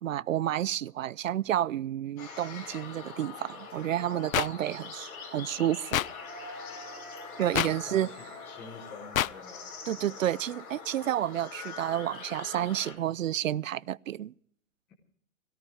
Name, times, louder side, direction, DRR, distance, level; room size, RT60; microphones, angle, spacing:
voice 1, 0.0-6.0 7.4-8.1 9.9-14.3, right 12 dB, 65° right, 0.6 m, -30 dB
sound 1, 2.2-12.9, left 4 dB, 25° left, 6.1 m, -43 dB
sound 2, 4.3-4.5 5.9-6.1 7.5-7.7 9.1-9.3, left 12 dB, 70° left, 0.5 m, -25 dB
voice 2, 7.3-9.7, left 5 dB, 5° left, 0.9 m, -48 dB
18.0 x 17.5 x 3.5 m
hypercardioid pair, 170°, 42 cm